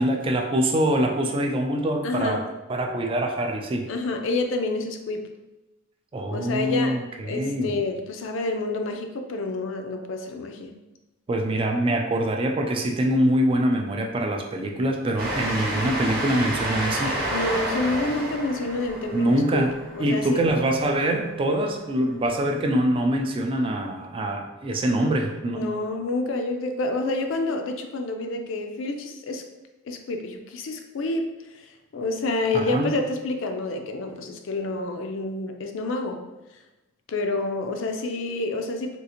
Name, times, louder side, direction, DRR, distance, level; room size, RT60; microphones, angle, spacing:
voice 1, 0.0-2.4 2.7-3.9 6.1-7.8 11.3-17.1 19.1-19.7 20.0-25.7 32.5-32.9, right 1 dB, 25° right, 2 dB, 0.3 m, -24 dB
voice 2, 2.0-2.4 3.9-5.3 6.3-10.7 17.3-20.5 25.5-29.4 29.8-31.2 31.5-36.2 37.1-39.0, left 2 dB, 70° left, 5 dB, 0.4 m, -28 dB
Train, 15.2-21.3, right 1 dB, 50° right, 0.8 m, -30 dB
3.7 x 2.4 x 2.8 m, 1.0 s
head